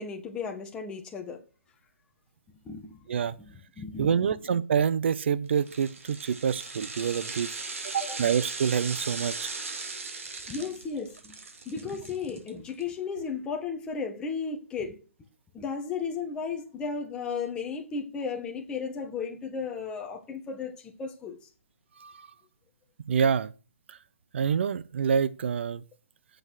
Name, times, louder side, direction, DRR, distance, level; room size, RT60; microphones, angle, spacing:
voice 1, 0.0-1.4 2.6-3.1 3.4-4.4 8.0-8.3 10.5-15.0 15.5-21.4, left 5 dB, 10° left, 1.5 m, -35 dB
voice 2, 4.0-7.5 7.8-9.5 22.0-22.3 23.1-23.5 23.9-24.0 24.3-25.8, right 7 dB, 60° right, 0.8 m, -27 dB
sound 1, 5.5-12.8 13.2-13.3, right 4 dB, 80° right, 2.8 m, -38 dB
8.0 x 7.6 x 6.4 m
hypercardioid pair, 155°, 7 cm